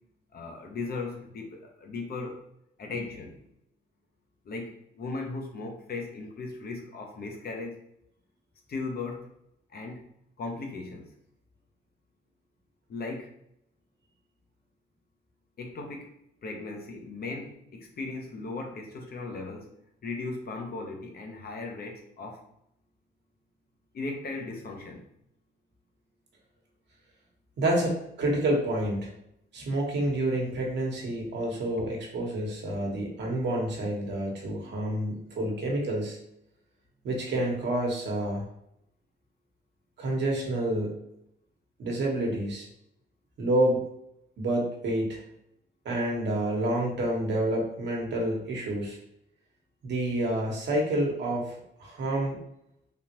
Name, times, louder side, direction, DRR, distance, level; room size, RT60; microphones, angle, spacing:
voice 1, 0.3-2.4 2.8-3.4 4.4-7.8 8.7-9.3 9.7-10.1 10.4-11.1 12.9-13.3 15.6-16.1 16.4-19.7 20.0-22.4 23.9-25.0, left 3 dB, 50° left, 1 dB, 0.8 m, -37 dB
voice 2, 27.6-29.1 29.5-36.2 37.0-38.4 40.0-41.0 41.8-42.7 43.4-43.8 44.4-45.2 45.8-49.0 49.8-52.4, right 1 dB, 60° right, -1 dB, 1.1 m, -28 dB
3.6 x 2.5 x 2.9 m, 0.78 s
cardioid pair, 90°, 20 cm